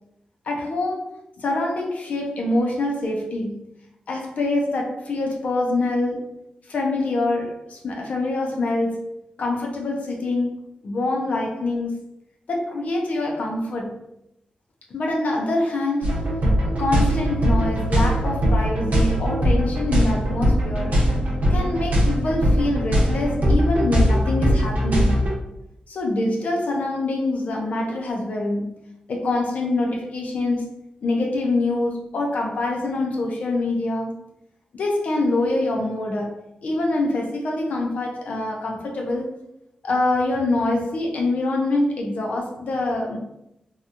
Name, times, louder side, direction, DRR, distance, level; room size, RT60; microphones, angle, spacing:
voice 1, 0.5-3.6 4.1-6.4 6.7-10.6 10.8-11.9 12.5-14.0 14.9-16.4 16.7-21.1 21.5-25.3 25.9-28.8 29.1-34.1 34.7-39.4 39.8-43.2, left 2 dB, 70° left, 0.5 m, -25 dB
sound 1, 16.0-25.3, equal, 70° right, 0.7 m, -20 dB
2.8 x 2.3 x 2.5 m
wide cardioid pair, 140°, 3 cm